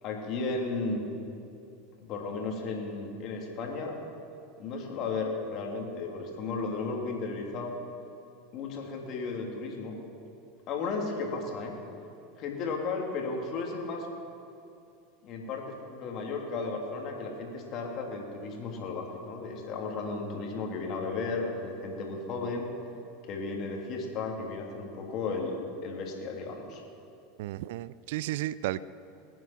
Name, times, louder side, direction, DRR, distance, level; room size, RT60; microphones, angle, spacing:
voice 1, 0.0-1.0 2.0-4.0 4.6-7.7 8.5-9.9 10.7-11.8 12.4-14.1 15.2-22.7 23.3-26.8, left 3 dB, 45° left, 1 dB, 2.9 m, -34 dB
voice 2, 27.4-28.8, right 15 dB, 65° right, 18 dB, 0.4 m, -33 dB
20.5 x 9.3 x 5.9 m, 2.6 s
hypercardioid pair, 85°, 0 cm